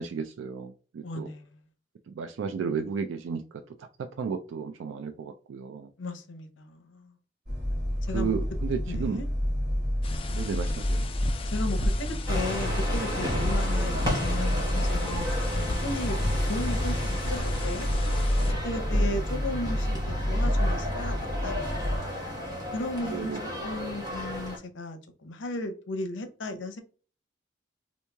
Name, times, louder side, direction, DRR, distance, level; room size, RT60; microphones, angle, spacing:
voice 1, 0.0-1.3 2.1-5.9 8.1-9.2 10.3-11.1 13.7-14.1 18.9-19.2 23.0-23.4, right 6 dB, 85° right, 0.3 m, -34 dB
voice 2, 1.0-1.6 6.0-7.2 8.1-8.3 8.9-9.3 11.5-17.9 18.6-20.0 20.3-22.1 22.7-26.8, left 2 dB, 80° left, 0.7 m, -36 dB
sound 1, 7.5-22.0, equal, 55° right, 1.2 m, -29 dB
sound 2, 10.0-18.5, left 3 dB, 30° left, 0.3 m, -36 dB
sound 3, 12.3-24.6, equal, 20° right, 1.0 m, -33 dB
2.9 x 2.7 x 3.3 m
head